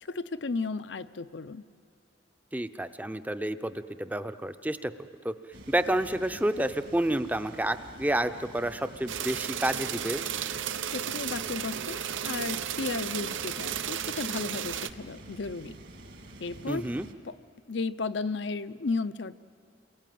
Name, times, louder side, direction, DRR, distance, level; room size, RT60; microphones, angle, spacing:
voice 1, 0.0-1.6 10.9-15.8 16.4-16.9 17.2-17.3 17.7-19.4, left 4 dB, 70° left, 13 dB, 0.6 m, -34 dB
voice 2, 2.5-4.9 5.2-5.3 5.7-10.2 16.7-17.1, right 1 dB, 10° right, 11 dB, 0.6 m, -29 dB
sound 1, 5.5-17.1, right 1 dB, 65° right, 1.9 m, -48 dB
sound 2, 9.1-14.9, right 9 dB, 85° right, 0.6 m, -34 dB
28.0 x 21.0 x 9.3 m, 2.4 s
head